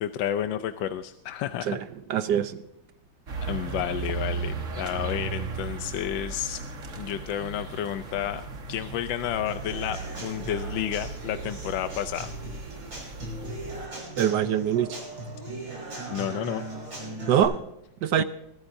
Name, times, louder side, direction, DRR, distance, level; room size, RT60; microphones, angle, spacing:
voice 1, 0.0-1.8 3.4-6.6 7.0-8.4 8.7-12.3 16.1-16.6 18.2-18.3, left 11 dB, 75° left, 9 dB, 1.3 m, -31 dB
voice 2, 2.1-2.6 14.2-15.0 17.3-17.6 18.0-18.2, right 9 dB, 70° right, 12 dB, 1.1 m, -23 dB
sound 1, 3.3-13.9, right 4 dB, 40° right, 1.6 m, -36 dB
Human voice / Acoustic guitar / Drum, 9.5-17.4, right 1 dB, 85° right, 7.3 m, -38 dB
22.0 x 14.0 x 2.6 m, 0.85 s
omnidirectional pair, 2.2 m